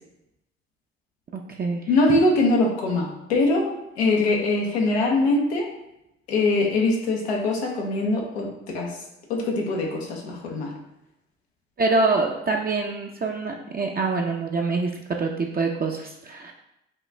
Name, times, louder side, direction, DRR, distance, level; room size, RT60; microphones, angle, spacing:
voice 1, 1.9-5.7 6.3-9.0 9.3-10.7, left 2 dB, 90° left, -1 dB, 0.8 m, -23 dB
voice 2, 11.8-16.5, right 3 dB, 30° right, 0 dB, 0.6 m, -25 dB
5.3 x 2.4 x 3.2 m, 0.87 s
hypercardioid pair, 50°, 31 cm